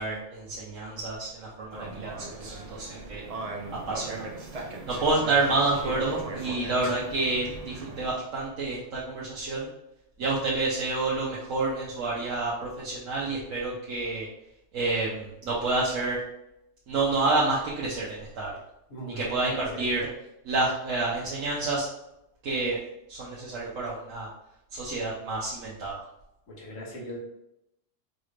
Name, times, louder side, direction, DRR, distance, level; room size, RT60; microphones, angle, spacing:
voice 1, 0.0-3.2 3.9-4.3 4.9-9.7 10.2-14.3 14.7-16.2 16.9-18.5 19.1-20.1 20.4-21.9 22.4-22.8 23.1-24.3 24.7-26.0, right 3 dB, 85° right, -6 dB, 1.2 m, -29 dB
sound 1, 1.7-8.1, right 3 dB, 40° right, 0.6 m, -38 dB
voice 2, 18.9-19.8 26.5-27.2, equal, 80° left, -2 dB, 1.5 m, -40 dB
5.3 x 2.5 x 3.1 m, 0.84 s
omnidirectional pair, 1.3 m